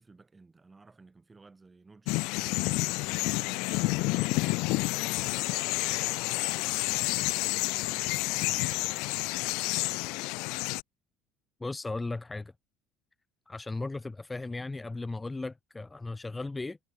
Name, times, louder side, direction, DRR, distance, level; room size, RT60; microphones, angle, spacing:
voice 1, 0.0-3.0 3.4-4.4 5.2-9.1, right 3 dB, 15° right, 6.6 m, -56 dB
sound 1, 2.1-10.8, left 26 dB, 75° left, 0.3 m, -29 dB
voice 2, 11.6-12.5 13.5-16.8, left 3 dB, 15° left, 0.7 m, -36 dB
cardioid pair, 125°, 0 cm